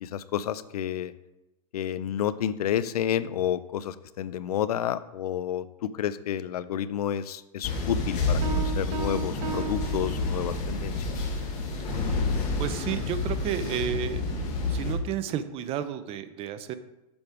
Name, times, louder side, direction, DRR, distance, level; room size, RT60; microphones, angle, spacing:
voice 1, 0.0-1.1 1.7-11.2, left 10 dB, 85° left, 16 dB, 0.5 m, -30 dB
sound 1, 7.6-14.9, left 3 dB, 40° left, 1.6 m, -29 dB
sound 2, 8.4-10.8, right 9 dB, 55° right, 0.9 m, -36 dB
voice 2, 12.6-14.2 14.7-16.7, right 9 dB, 30° right, 12 dB, 0.6 m, -32 dB
7.1 x 5.1 x 4.7 m, 0.97 s
hypercardioid pair, 130°, 19 cm